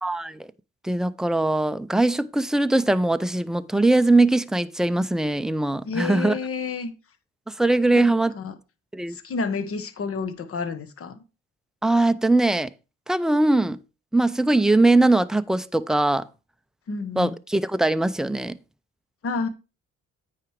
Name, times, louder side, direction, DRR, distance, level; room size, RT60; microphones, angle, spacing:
voice 1, 0.0-0.5 0.8-6.4 7.5-8.3 8.9-9.2 11.8-12.7 13.1-13.8 14.1-16.3 17.2-18.6, right 2 dB, ahead, 0.4 m, -21 dB
voice 2, 5.9-6.9 7.9-8.1 8.4-8.5 9.1-11.2 16.9-17.4 19.2-19.5, left 4 dB, 50° left, 1.2 m, -29 dB
9.0 x 4.9 x 4.7 m
cardioid pair, 90°, 30 cm